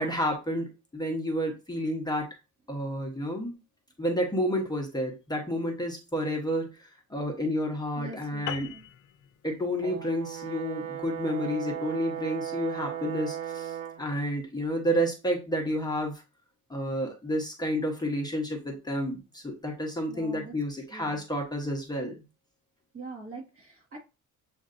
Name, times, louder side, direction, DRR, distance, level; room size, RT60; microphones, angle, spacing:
voice 1, 0.0-2.3 2.7-3.6 4.0-8.7 9.4-16.2 16.7-22.2, equal, 10° left, 1 dB, 0.9 m, -30 dB
voice 2, 7.9-8.8 20.1-20.6 20.9-21.2 22.9-24.0, right 3 dB, 45° right, -1 dB, 1.6 m, -43 dB
sound 1, 8.5-13.2, left 11 dB, 65° left, 0.5 m, -43 dB
Brass instrument, 9.8-14.0, right 9 dB, 90° right, 0.8 m, -36 dB
7.4 x 2.5 x 2.5 m, 0.29 s
cardioid pair, 135°, 33 cm